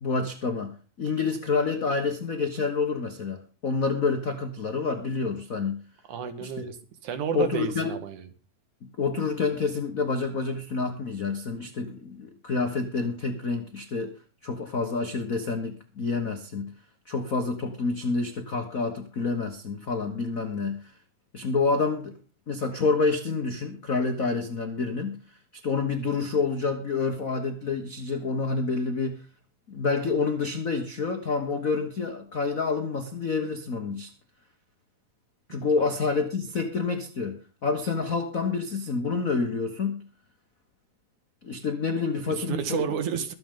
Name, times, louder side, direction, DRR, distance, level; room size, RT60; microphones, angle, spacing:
voice 1, 0.0-5.8 6.4-6.6 7.3-7.9 9.0-14.1 14.4-16.7 17.1-20.9 21.3-22.1 22.5-25.2 25.6-29.2 29.7-34.1 35.5-40.0 41.4-42.8, left 4 dB, 90° left, 0.7 m, -28 dB
voice 2, 6.1-6.8 7.0-8.2 35.5-35.9 42.4-43.3, right 7 dB, 75° right, 2.9 m, -31 dB
23.0 x 7.9 x 3.8 m
omnidirectional pair, 3.5 m